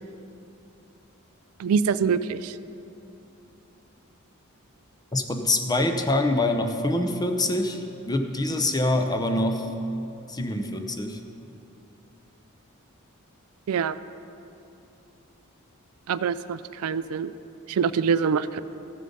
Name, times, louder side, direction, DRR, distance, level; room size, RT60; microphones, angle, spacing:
voice 1, 1.6-2.5 13.7-14.0 16.1-17.3 17.7-18.6, right 6 dB, 85° right, 14 dB, 0.4 m, -25 dB
voice 2, 5.1-9.7 10.3-11.2, left 1 dB, 20° left, 5 dB, 0.7 m, -25 dB
14.0 x 7.5 x 5.3 m, 2.8 s
head